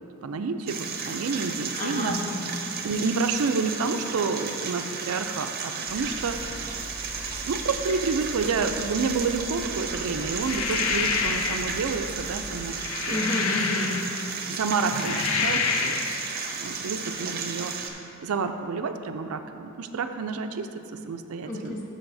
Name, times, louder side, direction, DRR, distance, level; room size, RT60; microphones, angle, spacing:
voice 1, 0.2-2.1 2.8-6.5 7.5-12.7 13.1-13.2 14.5-16.0 16.6-17.9 18.2-21.8, right 4 dB, 80° right, 8 dB, 0.4 m, -29 dB
sound 1, 0.7-17.9, right 5 dB, 45° right, 0.7 m, -34 dB
voice 2, 1.7-2.6 13.1-14.0 21.4-21.8, left 1 dB, 40° left, -2 dB, 1.1 m, -31 dB
sound 2, 5.9-12.6, right 1 dB, 20° left, 1.1 m, -41 dB
sound 3, 10.3-11.8 12.6-14.3 14.8-16.2, left 5 dB, 75° left, 0.5 m, -28 dB
12.5 x 6.4 x 2.6 m, 2.8 s
head